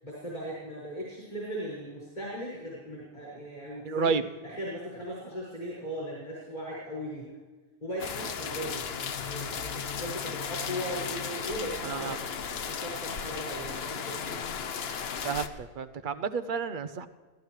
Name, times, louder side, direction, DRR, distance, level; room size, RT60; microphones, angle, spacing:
voice 1, 0.0-4.1 4.4-7.3 7.8-8.9 9.2-14.4, equal, 45° left, -7 dB, 6.5 m, -38 dB
voice 2, 3.8-4.2 11.8-12.2 15.2-17.1, right 5 dB, 55° right, 12 dB, 0.9 m, -30 dB
sound 1, 8.0-15.5, left 7 dB, 75° left, 1.1 m, -35 dB
27.5 x 16.0 x 3.3 m, 1.3 s
omnidirectional pair, 1.1 m